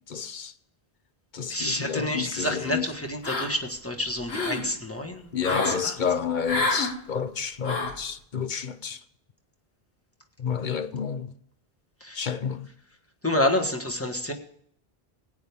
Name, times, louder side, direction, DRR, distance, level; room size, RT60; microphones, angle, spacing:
voice 1, 0.1-0.5 1.3-2.8 5.3-9.0 10.4-11.3 12.1-12.7, left 7 dB, 50° left, 0.8 m, -30 dB
voice 2, 1.5-5.9 12.0-12.2 13.2-14.3, left 1 dB, 15° left, 1.6 m, -29 dB
sound 1, 3.2-3.8 4.1-4.7 5.4-5.8 6.5-6.9 7.6-8.0, left 2 dB, 80° left, 1.9 m, -28 dB
17.0 x 9.4 x 3.6 m
omnidirectional pair, 1.0 m